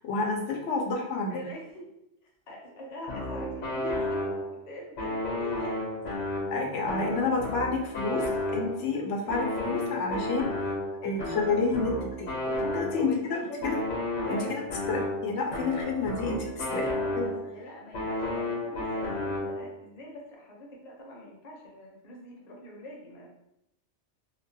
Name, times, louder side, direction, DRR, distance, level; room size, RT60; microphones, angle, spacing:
voice 1, 0.0-1.4 6.5-8.2 8.5-10.7 11.0-11.9 12.2-13.4 13.6-13.8 14.3-14.6 14.9-16.8 17.2-17.3, left 3 dB, 90° left, 0 dB, 0.9 m, -29 dB
voice 2, 1.3-1.9 2.5-5.9 12.9-13.8 14.2-15.1 16.6-23.3, left 1 dB, 45° left, -2 dB, 0.7 m, -43 dB
sound 1, 3.1-4.6 5.0-8.9 9.3-13.2 13.6-17.6 17.9-19.8, left 1 dB, 65° left, 1.0 m, -32 dB
2.8 x 2.2 x 2.6 m, 0.83 s
omnidirectional pair, 1.2 m